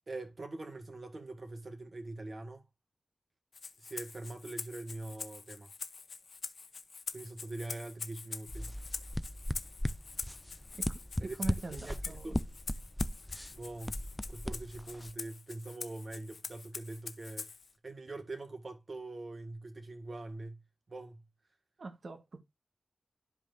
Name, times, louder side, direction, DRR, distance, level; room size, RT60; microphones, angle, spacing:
voice 1, 0.1-2.7 3.8-5.7 7.1-8.8 11.2-11.4 11.7-12.4 13.5-17.5 17.8-20.6 20.9-21.3, right 2 dB, 50° right, 1.9 m, -43 dB
Rattle (instrument), 3.5-17.7, left 5 dB, 75° left, 0.8 m, -45 dB
sound 1, 8.5-15.1, equal, 10° left, 0.4 m, -38 dB
voice 2, 11.4-12.3 21.8-22.4, right 3 dB, 65° right, 1.5 m, -42 dB
12.0 x 5.1 x 2.6 m
cardioid pair, 65°, 0 cm